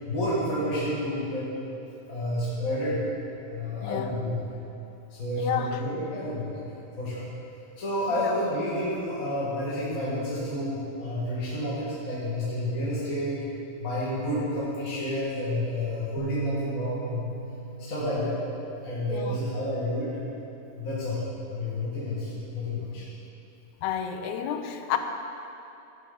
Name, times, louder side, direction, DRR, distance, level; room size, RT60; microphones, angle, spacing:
voice 1, 0.0-1.5 2.1-3.0 3.5-4.4 5.1-6.6 7.0-7.3 7.8-13.4 13.8-17.3 17.8-18.4 18.8-20.2 20.8-23.0, left 1 dB, 35° left, -8 dB, 1.7 m, -30 dB
voice 2, 5.4-5.8 8.2-8.3 19.1-19.4 23.8-25.0, left 9 dB, 85° left, 6 dB, 2.1 m, -30 dB
Bass guitar, 16.2-22.4, right 3 dB, 80° right, 2.3 m, -39 dB
13.5 x 8.8 x 3.9 m, 2.8 s
omnidirectional pair, 3.3 m